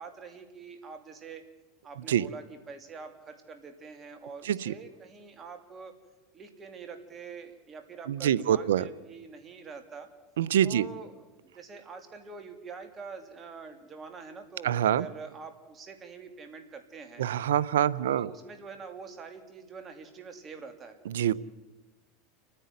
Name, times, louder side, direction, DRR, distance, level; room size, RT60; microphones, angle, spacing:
voice 1, 0.0-1.4 1.8-5.9 6.3-10.1 10.6-11.2 11.5-17.3 18.0-21.0, right 5 dB, 30° right, 6 dB, 3.0 m, -45 dB
voice 2, 8.1-8.9 10.4-10.9 14.6-15.0 17.2-18.3 21.1-21.3, right 10 dB, 90° right, 18 dB, 0.7 m, -25 dB
30.0 x 10.0 x 9.4 m, 1.1 s
supercardioid pair, 110°, 0 cm